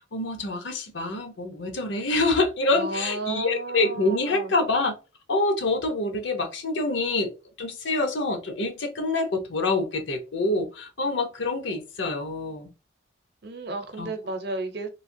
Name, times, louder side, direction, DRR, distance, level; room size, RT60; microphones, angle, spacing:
voice 1, 0.0-4.9 5.3-7.3 7.6-12.7 14.0-14.1, left 2 dB, 65° left, 0.8 m, -26 dB
voice 2, 2.7-4.5 13.4-14.9, right 2 dB, 55° right, 0.7 m, -33 dB
3.2 x 2.8 x 2.7 m
head